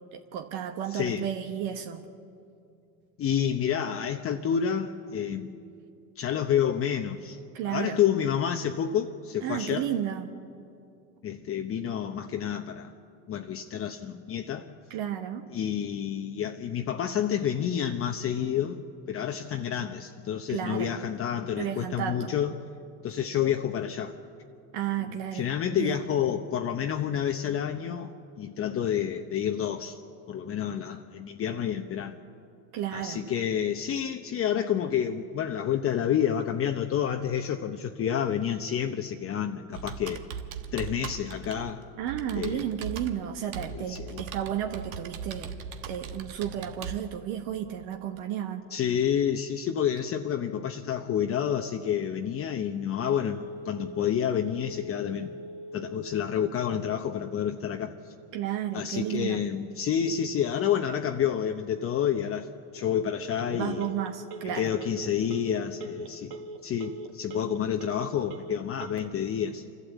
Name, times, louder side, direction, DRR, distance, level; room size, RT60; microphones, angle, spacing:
voice 1, 0.1-2.0 7.5-8.0 9.4-10.3 14.9-15.4 20.5-20.9 21.6-22.3 24.7-26.0 32.7-33.2 42.0-45.5 45.9-48.7 58.3-59.4 63.5-64.7, right 10 dB, 65° right, 1.4 m, -33 dB
voice 2, 0.9-1.3 3.2-5.6 6.2-9.9 11.2-12.9 13.3-14.7 15.5-22.5 23.0-24.2 25.0-28.1 28.4-30.0 30.3-32.2 32.9-40.2 40.7-41.9 42.4-42.7 43.7-44.2 48.7-55.3 55.7-58.0 58.7-63.9 64.4-66.4 66.6-69.6, left 9 dB, 35° left, 0.9 m, -29 dB
Computer keyboard, 39.7-47.0, right 6 dB, 90° right, 1.4 m, -39 dB
Telephone, 53.0-69.1, right 2 dB, 50° right, 2.3 m, -44 dB
27.5 x 12.0 x 8.2 m
supercardioid pair, 100°, 41 cm